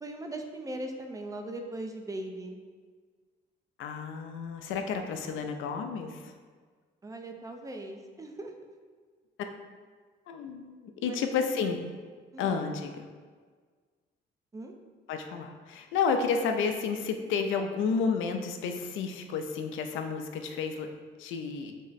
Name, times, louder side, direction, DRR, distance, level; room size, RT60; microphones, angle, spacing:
voice 1, 0.0-2.6 7.0-8.6 11.0-11.8 12.3-12.7 14.5-14.7, right 1 dB, 15° right, 4 dB, 0.4 m, -40 dB
voice 2, 3.8-6.3 10.3-11.8 12.4-12.9 15.1-20.9 21.2-21.7, left 5 dB, 80° left, 6 dB, 0.4 m, -31 dB
3.4 x 2.0 x 4.0 m, 1.5 s
cardioid pair, 90°, 20 cm